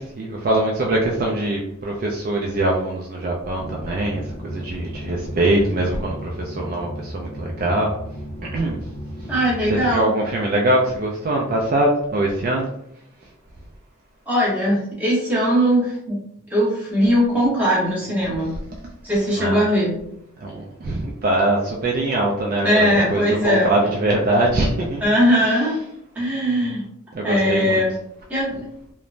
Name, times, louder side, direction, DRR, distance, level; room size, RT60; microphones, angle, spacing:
voice 1, 0.0-8.0 8.5-8.8 9.7-12.7 19.4-19.7 20.4-25.0 27.1-27.8, right 1 dB, 40° right, -2 dB, 0.3 m, -22 dB
sound 1, 3.6-10.0, equal, 50° left, 0.5 m, -34 dB
voice 2, 9.3-10.1 14.3-16.2 16.5-18.5 19.0-20.0 22.6-23.7 25.0-25.7 26.1-26.9 27.2-28.0 28.3-28.6, equal, 5° right, -6 dB, 0.9 m, -20 dB
3.0 x 2.1 x 2.4 m, 0.74 s
head